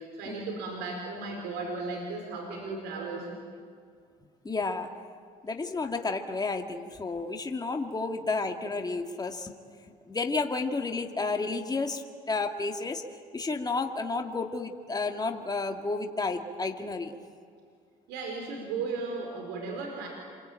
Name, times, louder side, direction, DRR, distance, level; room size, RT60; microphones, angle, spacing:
voice 1, 0.0-3.3 5.8-5.9 18.1-20.1, right 3 dB, 80° right, 2 dB, 4.9 m, -35 dB
voice 2, 4.4-4.9 5.4-9.6 10.1-13.0 13.3-17.1, left 3 dB, 25° left, 4 dB, 2.2 m, -31 dB
27.5 x 23.0 x 9.1 m, 2.2 s
supercardioid pair, 75°, 17 cm